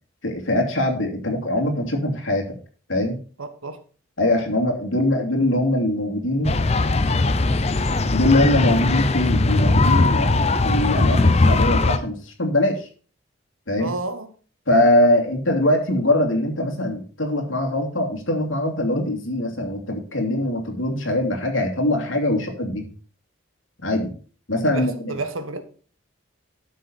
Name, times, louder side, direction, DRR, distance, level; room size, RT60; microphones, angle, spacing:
voice 1, 0.2-2.5 2.9-3.2 4.2-6.6 8.1-12.9 13.7-13.9 14.7-22.9 23.8-24.1 24.5-25.2, left 1 dB, 75° left, 2.8 m, -22 dB
voice 2, 3.4-3.8 4.2-4.3 13.8-14.3 24.5-25.6, right 2 dB, 90° right, 1.4 m, -31 dB
sound 1, 6.4-12.0, left 2 dB, 30° left, 0.6 m, -19 dB
12.0 x 6.6 x 4.3 m
head